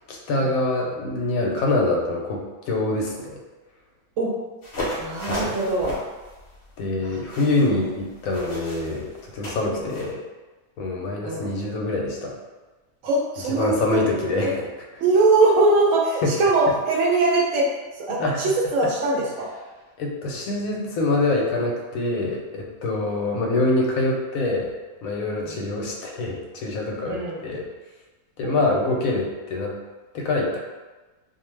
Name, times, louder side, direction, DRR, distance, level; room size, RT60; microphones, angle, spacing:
voice 1, 0.0-3.4 4.8-5.6 6.8-10.2 10.8-12.4 13.6-14.7 16.2-16.4 18.2-18.4 18.8-18.9 20.0-24.7 25.0-27.7 28.4-29.8 30.1-30.6, left 2 dB, 75° left, -1 dB, 1.0 m, -25 dB
sound 1, 4.6-10.1, left 1 dB, 50° left, 0.7 m, -35 dB
voice 2, 5.0-6.0 7.0-7.1 9.8-9.9 11.2-11.5 13.0-14.0 14.4-14.5 15.0-17.7 18.1-19.5 25.5-25.6 27.1-27.4 28.4-29.0, right 2 dB, 70° right, -2 dB, 0.9 m, -22 dB
2.5 x 2.1 x 3.1 m, 1.2 s
omnidirectional pair, 1.5 m